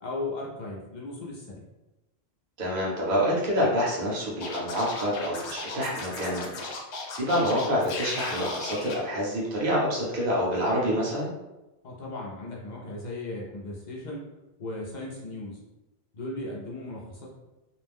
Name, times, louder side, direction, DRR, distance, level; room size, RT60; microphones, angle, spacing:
voice 1, 0.0-1.6 11.8-14.3 14.6-15.6 16.1-17.3, left 2 dB, 50° left, -3 dB, 0.6 m, -36 dB
voice 2, 2.6-6.6 7.1-11.3, equal, 55° right, -5 dB, 0.9 m, -27 dB
Scratching (performance technique), 4.4-8.9, left 3 dB, 85° left, 0.9 m, -36 dB
2.5 x 2.1 x 3.3 m, 1.0 s
omnidirectional pair, 1.1 m